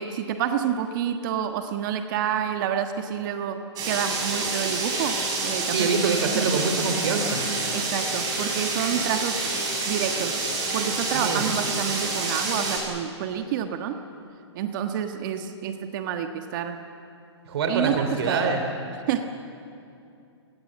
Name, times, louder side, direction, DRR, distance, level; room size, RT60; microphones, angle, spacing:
voice 1, 0.0-5.9 6.3-6.6 7.7-9.5 9.8-10.4 10.7-14.0 14.5-16.8 17.7-18.6 19.1-19.3, right 9 dB, 45° right, 6 dB, 1.4 m, -28 dB
sound 1, 3.8-12.8, right 3 dB, 25° right, 6.6 m, -28 dB
voice 2, 5.7-7.4 11.1-11.5 17.5-18.6, right 4 dB, 60° right, 5 dB, 3.4 m, -25 dB
27.0 x 19.5 x 7.5 m, 2.6 s
hypercardioid pair, 130°, 15 cm